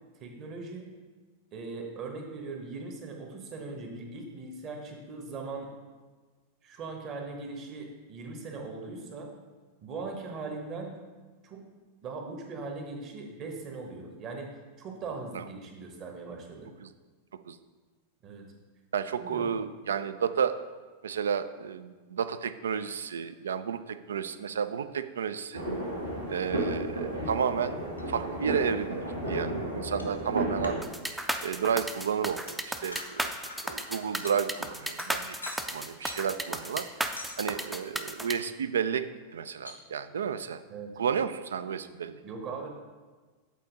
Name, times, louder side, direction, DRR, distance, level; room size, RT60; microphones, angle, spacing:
voice 1, 0.2-0.9 1.5-5.7 6.6-9.3 9.8-10.9 11.4-11.6 12.0-14.5 14.8-16.7 18.2-18.5 19.2-19.5 40.7-40.9 42.2-42.7, right 3 dB, 35° right, 2 dB, 1.1 m, -40 dB
voice 2, 18.9-20.6 21.0-25.6 26.3-27.8 28.1-30.8 31.4-33.3 33.6-35.4 35.7-37.1 37.4-39.1 39.3-40.6 41.0-42.2, right 7 dB, 65° right, 13 dB, 0.3 m, -32 dB
sound 1, 25.5-30.8, right 1 dB, 90° right, 1.7 m, -33 dB
sound 2, 27.9-28.1 28.4-28.5 29.8-30.2 30.6-31.4 31.6-35.7 36.0-36.3 37.0-37.4 39.7-39.8, left 2 dB, 80° left, 0.8 m, -45 dB
sound 3, 30.8-38.3, right 1 dB, 5° right, 0.5 m, -34 dB
8.3 x 4.2 x 3.9 m, 1.4 s
figure-of-eight pair, 90°, 0 cm